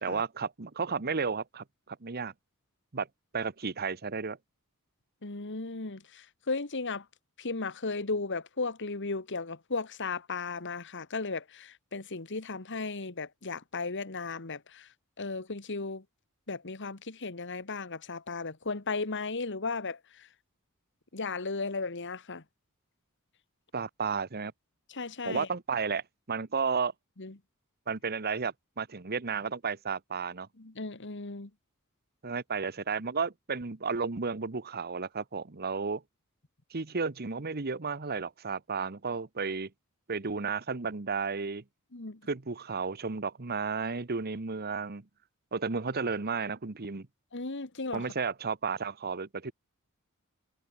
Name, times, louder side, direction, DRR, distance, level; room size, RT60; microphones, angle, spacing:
voice 1, 0.0-2.3 2.9-3.1 3.3-4.4 23.7-24.5 25.2-26.9 27.9-30.5 32.2-36.0 36.7-39.7 40.1-41.6 42.3-45.0 45.5-47.1 47.9-49.5, right 5 dB, 45° right, 1.1 m, -33 dB
voice 2, 5.2-7.1 7.4-14.9 15.2-16.0 16.5-20.3 21.1-22.4 24.9-25.5 27.2-27.3 30.6-31.5 41.9-42.2 47.3-48.0, left 3 dB, 55° left, 1.8 m, -35 dB
head